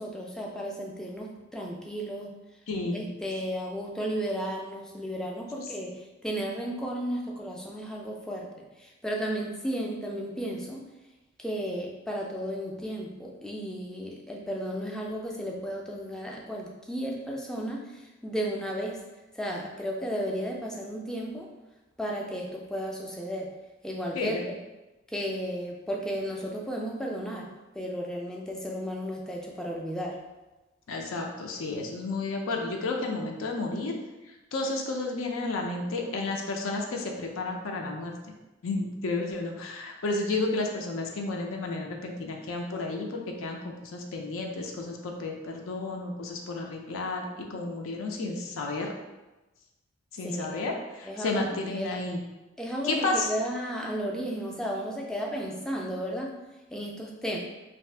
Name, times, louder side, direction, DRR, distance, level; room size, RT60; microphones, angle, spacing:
voice 1, 0.0-2.3 2.9-8.5 8.8-10.8 11.4-19.0 19.3-21.5 22.0-23.5 23.8-24.5 25.1-30.2 50.2-50.6 51.0-51.4 51.7-52.0 52.6-56.4 56.7-57.4, equal, 5° left, -1 dB, 0.3 m, -34 dB
voice 2, 2.7-3.1 24.1-24.4 30.9-34.0 34.5-38.1 38.6-48.9 50.1-52.2 52.8-53.3, left 3 dB, 75° left, 1 dB, 0.4 m, -32 dB
2.6 x 2.4 x 3.3 m, 1.1 s
head